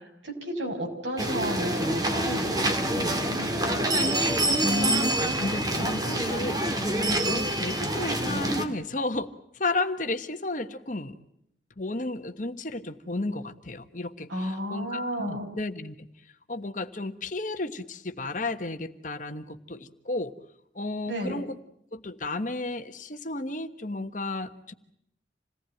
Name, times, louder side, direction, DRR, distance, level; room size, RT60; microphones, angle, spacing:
voice 1, 0.0-3.8 14.3-15.5 21.1-21.4, equal, 85° right, 2 dB, 6.4 m, -33 dB
sound 1, 1.2-8.7, right 1 dB, 20° right, 2.1 m, -26 dB
voice 2, 4.6-6.9 7.2-11.1 11.8-16.1 16.5-20.3 20.7-21.6 21.9-24.7, left 2 dB, 45° left, 9 dB, 1.3 m, -33 dB
28.0 x 18.5 x 9.1 m, 0.76 s
head